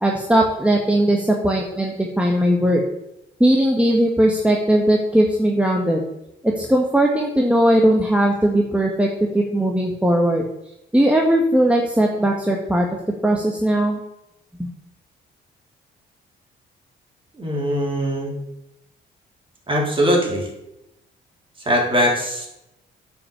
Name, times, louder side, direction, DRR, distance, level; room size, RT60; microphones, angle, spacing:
voice 1, 0.0-2.8 3.4-6.0 6.4-9.1 9.3-10.4 10.9-12.9 13.2-14.0 14.6-14.7, right 1 dB, 5° right, 0 dB, 1.4 m, -18 dB
voice 2, 17.3-18.3 19.7-20.5 21.7-22.5, equal, 25° right, -1 dB, 3.8 m, -21 dB
9.3 x 5.9 x 7.1 m, 0.87 s
cardioid pair, 90°, 20 cm